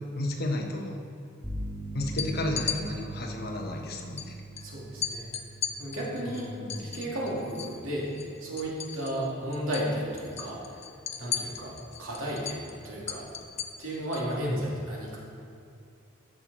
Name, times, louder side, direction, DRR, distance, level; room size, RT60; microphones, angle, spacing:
voice 1, 0.1-0.9 1.9-4.4 6.2-6.8 14.4-14.6, left 1 dB, 50° left, 2 dB, 1.1 m, -33 dB
sound 1, 1.4-9.2, right 1 dB, ahead, 1.6 m, -41 dB
sound 2, 2.1-2.8 4.2-4.3 4.6-4.7 5.0-7.8 8.1-9.3 9.5-9.9 10.2-14.3, left 9 dB, 30° left, 0.5 m, -36 dB
voice 2, 4.6-5.3 5.8-6.5 6.8-10.8 11.2-11.7 12.0-13.2 13.8-15.2, equal, 85° right, -4 dB, 2.4 m, -33 dB
14.0 x 6.2 x 4.1 m, 2.4 s
head